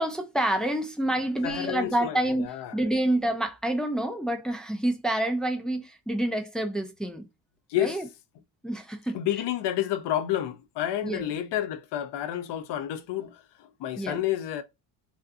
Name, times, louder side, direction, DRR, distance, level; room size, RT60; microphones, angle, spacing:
voice 1, 0.0-7.3 7.8-8.1 8.6-9.2 11.0-11.3 14.0-14.2, right 1 dB, ahead, 0.3 m, -28 dB
voice 2, 1.4-2.8 7.7-8.0 9.1-14.6, left 12 dB, 60° left, 0.6 m, -30 dB
2.6 x 2.4 x 2.3 m
supercardioid pair, 80°, 48 cm